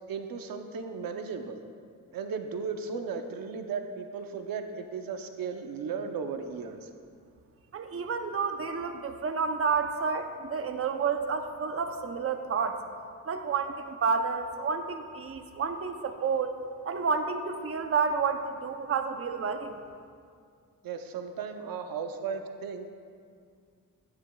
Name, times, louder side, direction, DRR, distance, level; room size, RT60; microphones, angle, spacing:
voice 1, 0.1-1.6 2.1-6.9 20.8-22.9, right 5 dB, 85° right, 6 dB, 0.7 m, -36 dB
voice 2, 7.7-12.8 13.3-16.6 16.8-19.8, right 5 dB, 45° right, 6 dB, 0.6 m, -30 dB
13.0 x 9.7 x 2.3 m, 2.2 s
cardioid pair, 85°, 34 cm